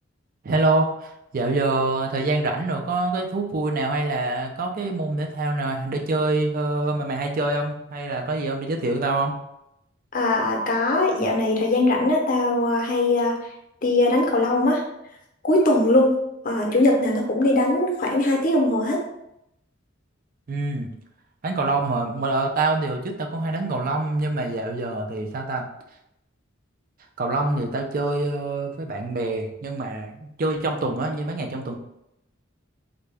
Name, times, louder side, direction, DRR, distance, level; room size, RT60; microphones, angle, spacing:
voice 1, 0.4-9.4 20.5-20.9 21.4-25.7 27.2-31.7, right 2 dB, 45° right, 3 dB, 0.5 m, -25 dB
voice 2, 10.1-13.3 13.8-14.8 15.4-16.1 16.4-19.0, left 2 dB, 45° left, 0 dB, 0.7 m, -20 dB
3.8 x 2.2 x 3.3 m, 0.82 s
head